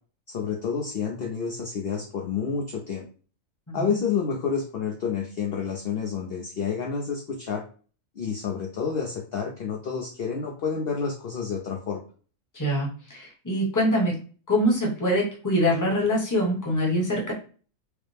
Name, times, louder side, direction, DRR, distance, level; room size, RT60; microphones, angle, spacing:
voice 1, 0.3-3.1 3.7-7.6 8.2-12.0, left 6 dB, 55° left, 1 dB, 0.7 m, -29 dB
voice 2, 12.5-14.2 14.5-17.3, equal, 15° left, -2 dB, 1.0 m, -24 dB
4.8 x 2.1 x 3.3 m, 0.39 s
omnidirectional pair, 1.6 m